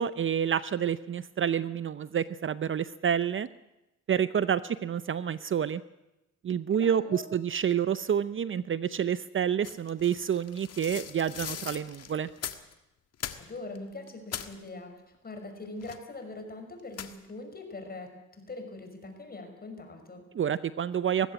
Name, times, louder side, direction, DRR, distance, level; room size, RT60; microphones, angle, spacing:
voice 1, 0.0-3.5 4.1-5.8 6.4-12.3 20.3-21.3, right 8 dB, 40° right, 15 dB, 0.7 m, -28 dB
voice 2, 6.7-7.3 13.4-20.3, left 2 dB, 30° left, 5 dB, 5.9 m, -42 dB
sound 1, 9.6-12.7 13.1-13.8 14.1-14.6 15.8-16.2 16.9-17.3, left 8 dB, 55° left, 1.7 m, -40 dB
20.0 x 15.5 x 9.7 m, 0.96 s
cardioid pair, 90°, 30 cm